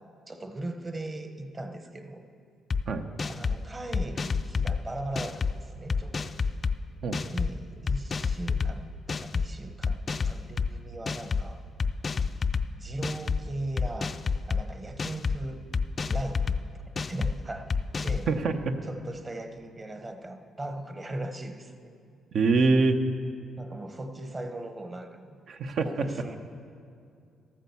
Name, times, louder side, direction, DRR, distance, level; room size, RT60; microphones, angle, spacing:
voice 1, 0.0-2.2 3.2-6.3 7.3-11.6 12.8-15.6 16.0-16.6 17.1-17.7 18.0-18.5 18.8-21.9 23.6-25.4 25.8-26.4, right 1 dB, 25° right, 7 dB, 1.1 m, -38 dB
sound 1, 2.7-2.8 3.2-3.6 3.9-4.8 5.1-5.5 5.9-6.7 7.1-7.5 7.9-8.7 9.1-9.4 9.8-10.7 11.1-11.4 11.8-12.6 13.0-13.4 13.8-14.6 15.0-15.4 15.7-16.6 17.0-17.3 17.7-18.2, left 5 dB, 35° left, 0.4 m, -28 dB
voice 2, 18.3-18.7 22.3-23.0 25.5-26.1, right 3 dB, 65° right, 7 dB, 0.9 m, -24 dB
13.0 x 8.8 x 7.0 m, 2.4 s
cardioid pair, 90°, 0 cm